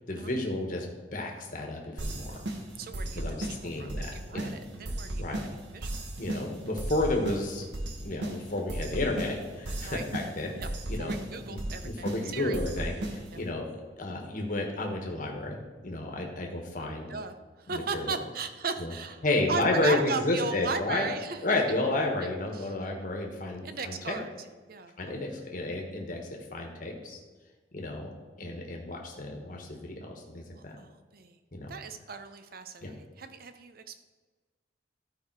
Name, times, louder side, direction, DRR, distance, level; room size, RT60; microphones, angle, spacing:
voice 1, 0.1-0.9 1.1-2.5 3.1-4.6 5.2-5.4 6.2-7.7 8.0-10.5 10.9-11.1 11.5-13.7 14.0-17.1 17.7-18.1 18.8-18.9 19.2-21.1 21.4-24.2 25.0-26.2 26.5-27.2 27.7-28.1 28.4-30.8 31.5-31.7 32.8-32.9, left 2 dB, 50° left, 1 dB, 1.4 m, -31 dB
sound 1, 2.0-13.5, right 1 dB, 85° right, 1.3 m, -37 dB
voice 2, 2.8-6.0 9.8-10.1 10.5-12.6 13.3-13.4 16.8-21.4 22.2-22.7 23.6-25.3 30.5-31.4 31.7-34.0, right 4 dB, 55° right, 9 dB, 0.7 m, -38 dB
12.5 x 4.9 x 4.6 m, 1.4 s
head